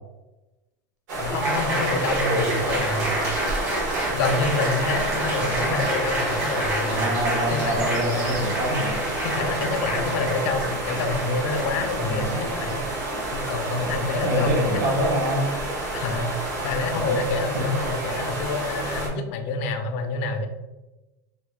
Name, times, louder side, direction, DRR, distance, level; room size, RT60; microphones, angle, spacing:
sound 1, 1.1-19.1, right 2 dB, 80° right, 1.3 m, -30 dB
voice 1, 1.2-3.4 4.1-7.2 7.5-8.2 9.2-12.9 13.3-15.1 15.9-20.5, left 3 dB, 45° left, 6 dB, 0.4 m, -28 dB
Applause, 1.4-12.7, right 1 dB, 60° right, 1.4 m, -28 dB
voice 2, 5.4-5.8 7.0-9.0 12.0-12.4 14.2-15.5 16.9-17.3 17.5-17.6, right 1 dB, 35° right, 1 dB, 0.6 m, -26 dB
3.3 x 2.1 x 3.0 m, 1.1 s
supercardioid pair, 180°, 10 cm